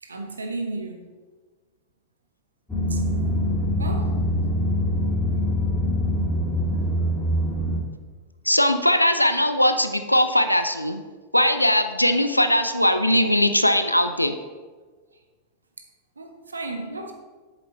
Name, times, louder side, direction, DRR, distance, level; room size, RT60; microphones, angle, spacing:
voice 1, 0.0-1.1 2.9-3.0 3.8-4.2 15.1-15.2 15.8-15.9 16.2-17.1, right 2 dB, 75° right, 1.0 m, -34 dB
sound 1, 2.7-7.8, equal, 5° left, 2.0 m, -24 dB
voice 2, 8.5-11.0 11.3-14.4, left 1 dB, 90° left, 0.5 m, -20 dB
8.0 x 7.1 x 4.2 m
figure-of-eight pair, 90°, 0 cm